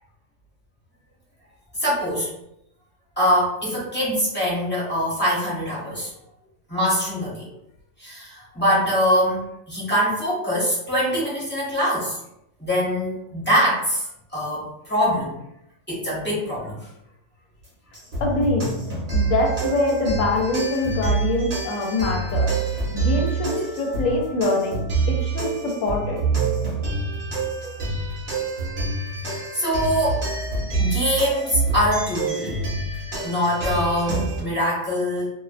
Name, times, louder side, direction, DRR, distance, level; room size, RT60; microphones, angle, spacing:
voice 1, 1.8-2.3 3.2-6.1 6.7-7.5 8.0-12.2 12.6-14.0 14.3-15.4 15.9-16.7 29.2-30.2 30.8-32.6 33.2-35.2, equal, 10° left, -7 dB, 0.7 m, -23 dB
sound 1, 17.9-34.4, right 3 dB, 45° right, 0.8 m, -26 dB
voice 2, 18.2-18.7 19.1-26.2, left 2 dB, 85° left, 0 dB, 1.0 m, -24 dB
2.5 x 2.1 x 2.5 m, 0.82 s
omnidirectional pair, 1.3 m